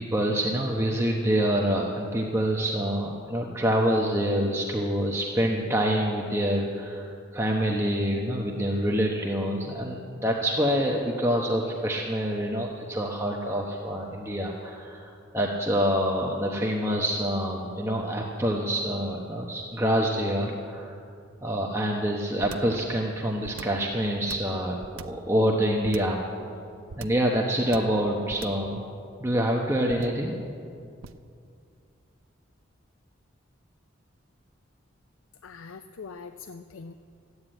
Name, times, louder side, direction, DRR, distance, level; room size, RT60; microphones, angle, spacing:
voice 1, 0.0-20.9 21.4-26.2 27.0-28.8 29.2-30.4, equal, 15° right, -1 dB, 0.9 m, -26 dB
sound 1, 22.4-22.8 23.4-23.9 24.3-25.3 25.8-26.2 26.9-27.3 27.7-28.0 28.3-28.7 29.9-30.3 31.0-31.3, right 5 dB, 85° right, 0.6 m, -41 dB
voice 2, 35.4-36.9, left 5 dB, 85° left, 10 dB, 0.5 m, -42 dB
14.0 x 9.6 x 8.9 m, 2.4 s
head